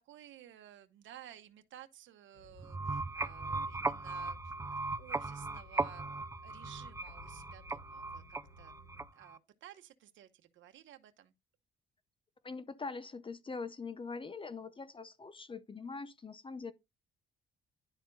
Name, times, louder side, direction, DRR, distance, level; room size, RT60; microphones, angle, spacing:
voice 1, 0.0-4.5 5.0-6.1 6.4-8.7 9.1-11.3, right 11 dB, 75° right, 1.0 m, -55 dB
sound 1, 2.3-9.1, left 3 dB, 50° left, 3.6 m, -57 dB
sound 2, 2.6-9.4, right 3 dB, 15° right, 0.4 m, -38 dB
voice 2, 12.4-16.7, left 4 dB, 25° left, 0.7 m, -43 dB
10.5 x 4.3 x 4.0 m
cardioid pair, 90°, 20 cm